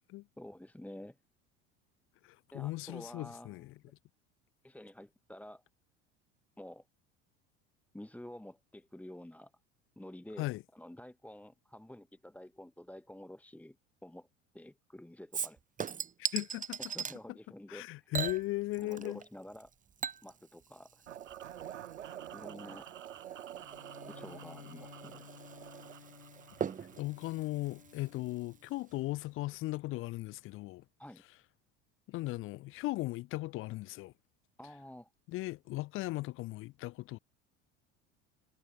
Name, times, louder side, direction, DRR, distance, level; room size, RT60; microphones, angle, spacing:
voice 1, 0.4-1.2 2.5-3.6 4.6-5.6 6.6-6.9 7.9-9.5 9.9-13.8 14.0-14.3 14.5-15.6 16.9-18.1 18.8-19.7 20.2-21.0 22.3-23.0 24.1-25.3 31.0-31.2 34.6-35.1, left 1 dB, 5° left, 1.7 m, -49 dB
voice 2, 2.2-3.7 10.4-10.6 16.3-16.8 17.7-19.2 27.0-30.8 32.1-34.1 35.3-37.2, left 19 dB, 35° left, 0.4 m, -37 dB
Chink clink / Liquid, 15.3-17.2 18.1-19.3 19.5-28.6 28.9-29.0, right 7 dB, 20° right, 0.9 m, -41 dB
sound 1, 21.1-27.0, right 10 dB, 85° right, 0.7 m, -48 dB
Bowed string instrument, 23.6-29.0, left 6 dB, 90° left, 2.2 m, -55 dB
figure-of-eight pair, 70°, 37 cm